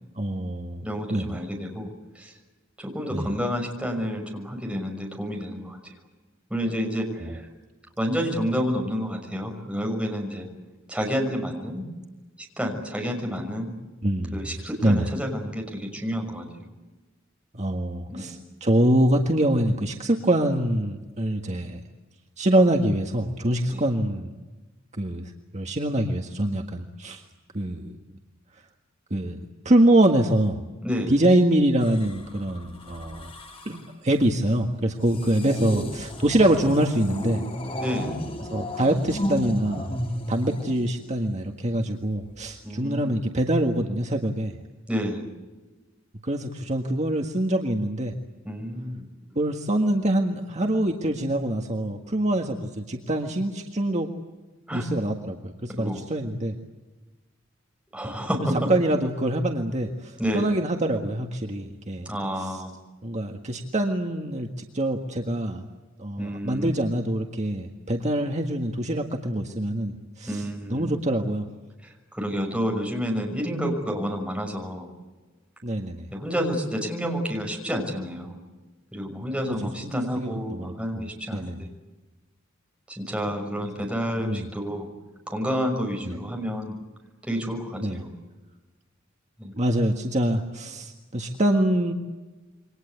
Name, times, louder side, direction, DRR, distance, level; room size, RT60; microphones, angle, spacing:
voice 1, 0.1-0.8 1.1-1.4 3.1-3.3 7.2-7.4 14.0-14.5 14.8-15.1 17.5-21.8 22.4-24.3 25.0-27.3 27.5-28.0 29.1-30.6 31.1-33.3 33.6-37.4 38.4-39.9 40.3-44.6 46.2-48.1 49.3-54.1 54.7-56.5 58.5-62.1 62.4-62.6 63.0-65.6 66.0-71.5 75.6-76.1 79.5-81.0 81.3-81.6 84.2-84.5 86.0-86.2 87.8-88.0 89.5-91.9, right 1 dB, 35° right, 3 dB, 1.7 m, -25 dB
voice 2, 0.8-2.3 2.8-5.9 6.5-7.5 8.0-10.5 10.9-11.8 12.4-13.7 14.3-16.5 18.1-18.4 23.7-23.8 30.8-31.1 35.4-35.9 37.8-38.1 42.6-43.1 44.9-45.3 48.4-49.1 54.7-54.8 55.7-56.0 57.9-58.7 60.2-60.5 62.0-62.7 66.2-66.8 70.3-70.9 71.8-74.9 76.1-78.4 78.9-81.7 82.9-84.9 85.3-86.8 87.2-88.1 89.4-89.5, equal, 5° right, 1 dB, 6.2 m, -29 dB
sound 1, 31.8-33.9 35.0-41.4 42.3-42.6, left 1 dB, 30° left, 3.4 m, -34 dB
28.5 x 24.5 x 8.2 m, 1.2 s
head